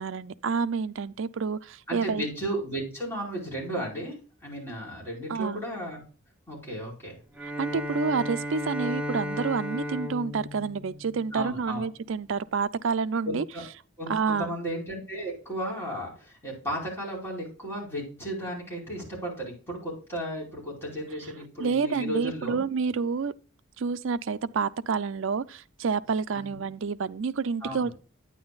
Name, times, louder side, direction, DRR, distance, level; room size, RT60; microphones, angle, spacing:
voice 1, 0.0-2.2 5.3-5.6 7.6-13.4 14.1-14.5 21.6-23.3 23.8-28.0, right 5 dB, 60° right, 0.4 m, -28 dB
voice 2, 1.9-4.1 4.4-6.0 6.5-7.2 11.3-11.8 13.3-13.6 14.0-22.6 26.3-26.6 27.6-27.9, right 1 dB, 10° left, 4.9 m, -34 dB
Bowed string instrument, 7.3-11.8, equal, 5° right, 1.0 m, -34 dB
9.9 x 9.5 x 2.3 m
head